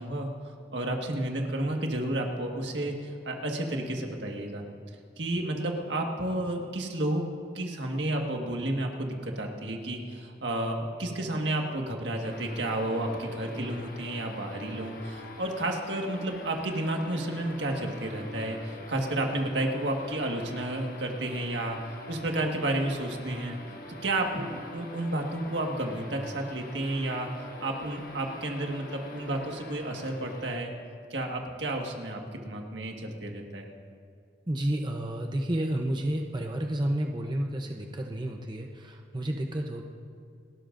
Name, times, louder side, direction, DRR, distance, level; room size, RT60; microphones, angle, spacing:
voice 1, 0.0-4.6 5.2-7.2 7.5-21.8 22.1-23.6 24.0-27.3 27.6-30.7 31.1-33.6, right 1 dB, 80° right, 2 dB, 1.6 m, -31 dB
sound 1, 12.2-30.6, left 2 dB, 50° left, 1.3 m, -45 dB
voice 2, 34.5-39.8, right 1 dB, 25° right, 2 dB, 0.7 m, -31 dB
28.5 x 12.5 x 2.6 m, 2.3 s
head